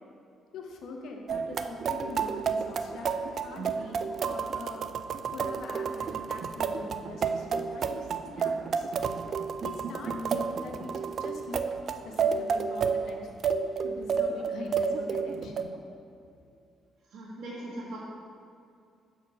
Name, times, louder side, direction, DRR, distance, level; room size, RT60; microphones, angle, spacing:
voice 1, 0.5-4.9 5.3-8.9 9.6-11.6 12.0-13.3 13.8-15.8, left 3 dB, 75° left, 2 dB, 1.0 m, -43 dB
sound 1, 1.3-15.6, right 6 dB, 55° right, 0.4 m, -31 dB
voice 2, 17.1-18.0, right 1 dB, 70° right, -8 dB, 1.5 m, -39 dB
6.2 x 4.4 x 6.0 m, 2.4 s
cardioid pair, 90°, 0 cm